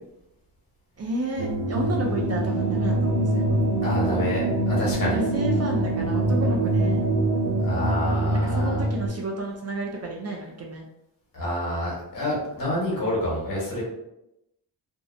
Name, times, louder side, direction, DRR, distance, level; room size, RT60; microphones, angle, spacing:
voice 1, 1.0-3.6 5.1-7.1 8.4-10.9, right 2 dB, 40° right, 0 dB, 0.4 m, -31 dB
sound 1, 1.4-9.1, right 2 dB, 90° right, 0.6 m, -24 dB
voice 2, 3.8-5.2 7.6-8.9 11.3-13.8, left 1 dB, 55° left, -5 dB, 1.3 m, -28 dB
2.6 x 2.0 x 2.5 m, 0.85 s
cardioid pair, 100°, 41 cm